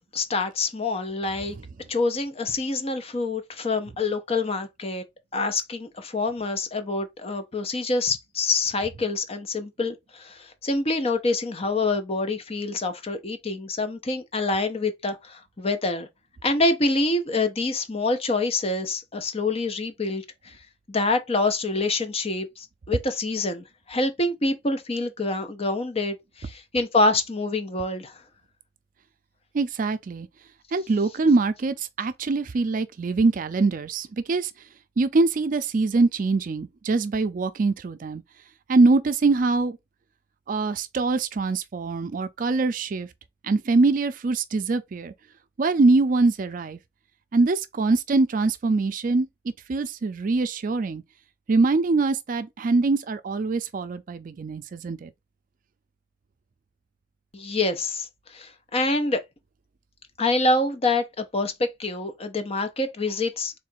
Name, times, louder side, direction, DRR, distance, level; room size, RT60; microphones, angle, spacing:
voice 1, 0.1-1.6 1.9-5.0 5.3-16.1 16.4-20.5 20.9-28.1 57.3-59.2 60.2-63.5, left 2 dB, 35° left, 0.7 m, -26 dB
voice 2, 29.5-30.3 30.7-34.5 35.0-38.2 38.7-39.8 40.5-43.1 43.4-45.1 45.6-46.8 47.3-49.3 49.7-51.0 51.5-55.1, right 3 dB, 50° right, 0.4 m, -23 dB
3.7 x 2.5 x 4.4 m
head